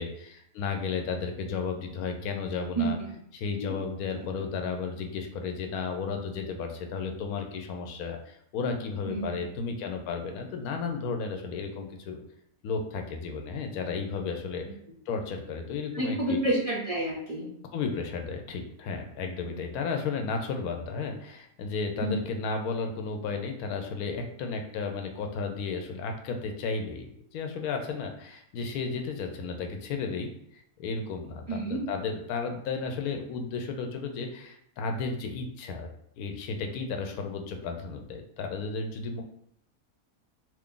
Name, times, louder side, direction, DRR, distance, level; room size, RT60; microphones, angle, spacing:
voice 1, 0.0-3.0 3.3-12.2 12.6-14.7 15.1-16.4 17.7-30.3 30.8-35.9 36.2-39.2, left 4 dB, 80° left, 4 dB, 1.0 m, -33 dB
voice 2, 9.1-9.4 15.9-17.5 19.4-19.6 22.0-22.1 31.5-31.8, right 2 dB, 55° right, -5 dB, 0.3 m, -29 dB
2.8 x 2.4 x 3.6 m, 0.71 s
omnidirectional pair, 1.5 m